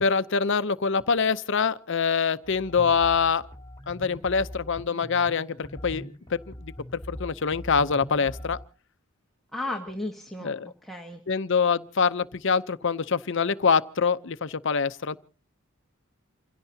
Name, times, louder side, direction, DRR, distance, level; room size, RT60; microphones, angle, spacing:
voice 1, 0.0-3.5 3.9-6.7 7.1-8.6 10.4-10.7 11.3-15.2, left 5 dB, 60° left, 0.7 m, -25 dB
sound 1, 2.4-8.6, equal, 15° left, 3.3 m, -42 dB
voice 2, 9.5-11.2, left 2 dB, ahead, 1.3 m, -35 dB
28.0 x 16.5 x 2.8 m
head